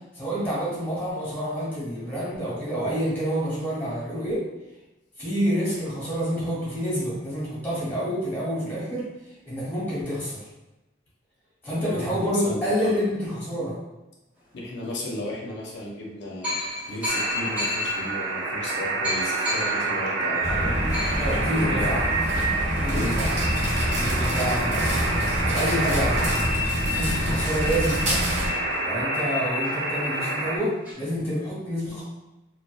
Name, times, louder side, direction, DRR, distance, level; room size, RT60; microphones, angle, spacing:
voice 1, 0.1-4.4 5.2-9.1 9.4-10.4 11.6-13.8 21.2-22.0 22.8-23.3 24.0-25.1 25.5-26.3 26.9-28.2 28.8-32.0, equal, 10° left, -9 dB, 0.9 m, -28 dB
voice 2, 12.0-12.9 14.5-16.5 16.9-21.9 22.8-23.2 27.2-27.5, left 1 dB, 65° left, -3 dB, 0.5 m, -34 dB
sound 1, 14.7-14.8 15.7-15.8 16.4-25.6 26.0-26.1 26.3-30.9, left 1 dB, 10° right, 0.6 m, -37 dB
sound 2, 17.1-30.6, right 2 dB, 65° right, 0.4 m, -27 dB
sound 3, 20.4-28.5, equal, 35° right, 0.8 m, -27 dB
2.5 x 2.1 x 2.3 m, 1.0 s
head